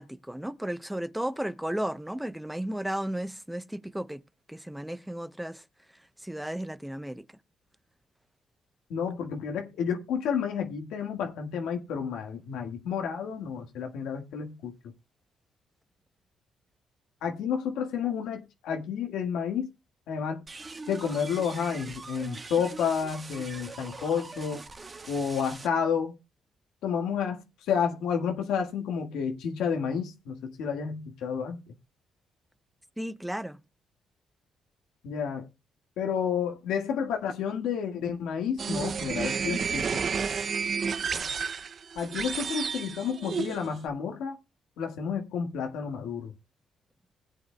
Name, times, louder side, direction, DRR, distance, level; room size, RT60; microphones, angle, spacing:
voice 1, 0.0-4.2 4.5-5.6 6.2-7.2 33.0-33.6, right 1 dB, 5° right, 0.7 m, -34 dB
voice 2, 8.9-14.7 17.2-19.7 20.1-20.4 20.9-24.6 25.1-26.1 26.8-27.4 27.7-31.6 35.0-35.5 36.0-40.0 42.0-44.4 44.8-46.3, left 7 dB, 85° left, 1.6 m, -30 dB
sound 1, 20.5-25.7, right 3 dB, 30° right, 1.3 m, -43 dB
sound 2, 38.6-43.9, right 6 dB, 45° right, 0.5 m, -31 dB
20.0 x 7.9 x 2.2 m
cardioid pair, 90°, 0 cm